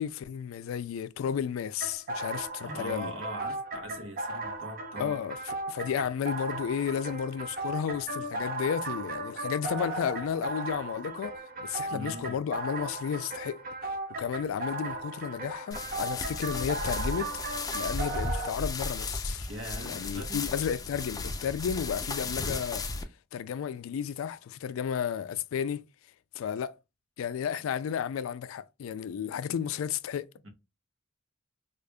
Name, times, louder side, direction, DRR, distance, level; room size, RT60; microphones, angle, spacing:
voice 1, 0.0-3.1 5.0-5.4 5.7-17.3 17.7-19.5 19.8-22.9 23.3-25.8 26.3-26.8 27.2-30.3, left 8 dB, 85° left, 0.3 m, -33 dB
sound 1, 1.8-18.5, right 2 dB, 45° right, 0.7 m, -36 dB
voice 2, 2.6-5.2 11.9-12.3 19.5-20.5 30.4-30.5, right 1 dB, 70° right, 1.0 m, -40 dB
sound 2, 15.7-23.0, left 3 dB, 20° left, 0.4 m, -35 dB
4.9 x 2.4 x 2.2 m
head